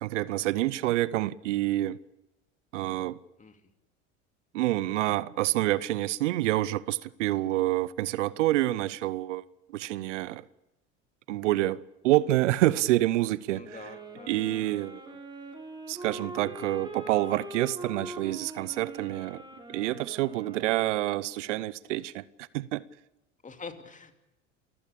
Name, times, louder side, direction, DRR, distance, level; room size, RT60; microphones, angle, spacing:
voice 1, 0.0-2.0 2.7-3.2 4.5-9.4 9.7-10.4 11.3-13.9 14.3-15.2 15.9-19.4 19.7-22.8, right 16 dB, 75° right, 0.7 m, -27 dB
voice 2, 13.5-14.3 23.4-24.1, left 4 dB, 20° left, 2.7 m, -44 dB
sound 1, 13.6-21.5, right 1 dB, 10° right, 4.2 m, -43 dB
28.5 x 15.5 x 8.6 m
hypercardioid pair, 80°, 37 cm